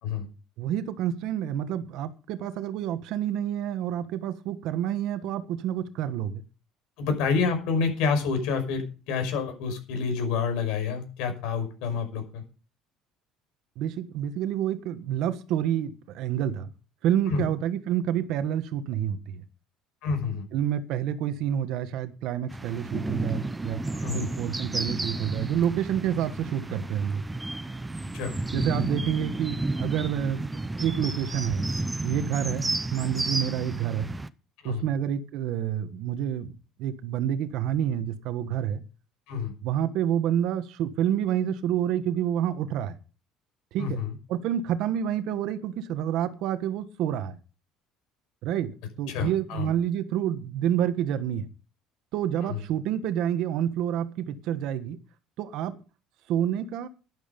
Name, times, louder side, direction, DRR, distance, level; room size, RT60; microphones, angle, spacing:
voice 1, 0.6-6.4 13.8-16.7 17.0-19.4 20.5-23.8 24.1-27.2 28.5-30.4 30.8-31.6 32.0-34.1 34.6-36.5 36.8-38.8 39.6-43.0 43.7-44.0 44.3-47.4 48.4-48.7 49.0-51.5 52.1-55.0 55.4-55.7 56.3-56.9, right 10 dB, 55° right, 1.4 m, -28 dB
voice 2, 7.0-12.4 17.3-17.5 20.0-20.4 24.0-24.3 28.1-28.3 34.6-34.8 39.3-39.5 43.8-44.1 49.1-49.7 52.4-52.6, left 5 dB, 70° left, 5.7 m, -28 dB
sound 1, 22.5-34.3, right 2 dB, 10° right, 0.6 m, -32 dB
12.5 x 11.0 x 5.3 m
cardioid pair, 175°, 0 cm